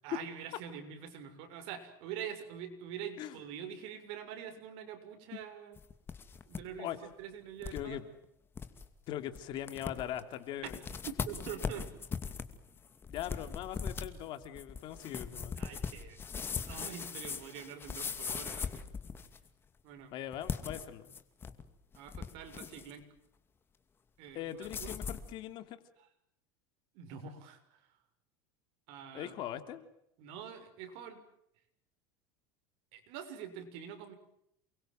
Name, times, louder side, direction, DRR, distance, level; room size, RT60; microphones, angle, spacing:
voice 1, 0.0-5.8 6.5-8.0 10.7-10.8 11.1-11.9 15.6-16.2 16.7-18.9 19.8-20.1 21.9-23.1 24.2-24.9 26.9-28.0 28.9-29.3 30.2-31.2 32.9-34.1, right 8 dB, 60° right, 7 dB, 6.7 m, -45 dB
sound 1, 5.8-6.6 6.9-7.0 7.6-7.8 8.2-8.3 8.5-8.8 9.3-9.4 9.7-10.2 10.6-19.5 20.3-21.6 21.9-22.9 24.6-25.3, left 6 dB, 20° left, 2.4 m, -40 dB
voice 2, 7.7-8.0 9.1-10.8 13.1-15.6 20.1-21.1 24.3-25.8 29.1-29.8, left 11 dB, 45° left, 9 dB, 3.1 m, -41 dB
29.0 x 23.0 x 7.8 m, 0.77 s
supercardioid pair, 145°, 11 cm